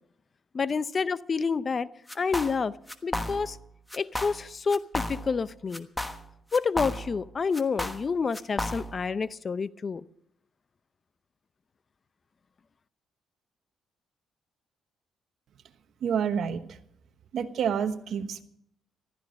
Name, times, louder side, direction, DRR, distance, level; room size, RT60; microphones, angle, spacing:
voice 1, 0.5-1.9 2.2-2.7 3.0-3.6 3.9-5.9 6.5-10.0, left 5 dB, 40° left, 0.6 m, -28 dB
sound 1, 2.1-2.6 2.9-3.6 3.9-4.4 4.7-5.4 5.7-7.2 7.5-9.1, left 1 dB, 10° left, 1.2 m, -33 dB
voice 2, 16.0-16.8 17.3-18.4, right 7 dB, 65° right, 1.1 m, -28 dB
14.5 x 13.5 x 5.2 m
cardioid pair, 90°, 0 cm